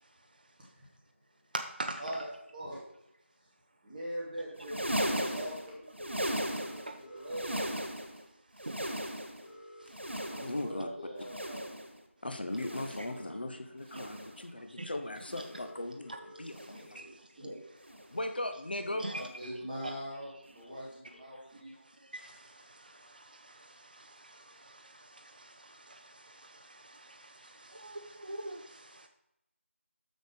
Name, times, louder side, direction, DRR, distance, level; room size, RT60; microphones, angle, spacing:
voice 1, 1.5-2.0 6.9-7.0 8.6-9.3 9.8-10.1 14.8-14.9 17.0-17.4 19.0-19.2 19.8-19.9 21.8-29.1, right 2 dB, 40° right, 0.5 m, -44 dB
voice 2, 3.8-6.3 6.9-7.7 10.3-11.7 13.3-13.4 16.6-17.6 18.9-21.7, equal, 5° right, 0.7 m, -42 dB
sound 1, 4.5-7.0 7.2-8.2 8.5-9.5 9.9-10.8 11.2-12.0 12.5-13.2 13.8-14.4 15.1-15.7 16.5-16.9 17.8-18.1 19.1-19.3 20.5-20.6, equal, 60° right, 1.4 m, -37 dB
sound 2, 6.4-7.4 9.4-10.4 12.4-13.4 15.4-16.4 17.0-17.1 18.1-19.1 21.1-21.2, equal, 25° left, 2.8 m, -52 dB
voice 3, 10.4-11.1 12.2-16.1 16.4-17.0 18.1-19.1, left 1 dB, 45° left, 0.8 m, -38 dB
6.5 x 6.4 x 4.9 m
figure-of-eight pair, 170°, 7 cm